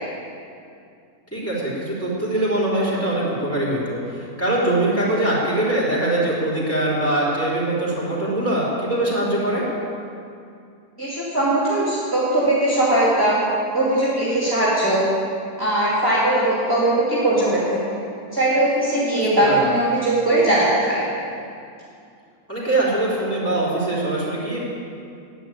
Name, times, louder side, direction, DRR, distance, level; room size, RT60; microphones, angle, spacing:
voice 1, 1.3-9.6 19.5-19.7 22.5-24.6, right 1 dB, 10° left, -6 dB, 3.8 m, -22 dB
voice 2, 11.0-13.4 13.7-15.0 15.6-18.0 18.3-21.1, right 1 dB, 15° right, -8 dB, 2.7 m, -20 dB
11.0 x 10.0 x 8.9 m, 2.4 s
omnidirectional pair, 1.7 m